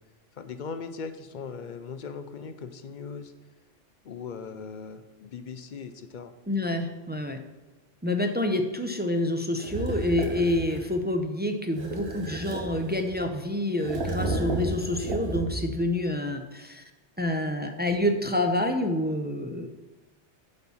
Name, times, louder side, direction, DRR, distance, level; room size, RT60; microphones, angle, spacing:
voice 1, 0.4-3.3 4.0-6.3, left 5 dB, 50° left, 9 dB, 0.6 m, -39 dB
voice 2, 6.5-7.4 8.0-16.8 17.2-19.7, left 1 dB, 15° right, 5 dB, 0.4 m, -28 dB
sound 1, 9.6-10.9 11.7-13.3 13.8-15.8, right 2 dB, 55° right, 1.3 m, -32 dB
8.0 x 4.4 x 7.1 m, 1.1 s
omnidirectional pair, 1.2 m